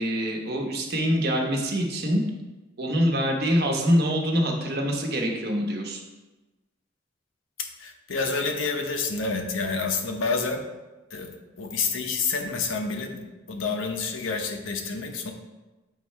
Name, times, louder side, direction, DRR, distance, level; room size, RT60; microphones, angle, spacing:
voice 1, 0.0-2.2 2.8-6.0, equal, 55° right, 1 dB, 1.0 m, -25 dB
voice 2, 7.6-10.6 11.1-13.2 13.5-15.3, left 4 dB, 85° left, 4 dB, 0.8 m, -28 dB
7.5 x 3.2 x 4.6 m, 1.1 s
head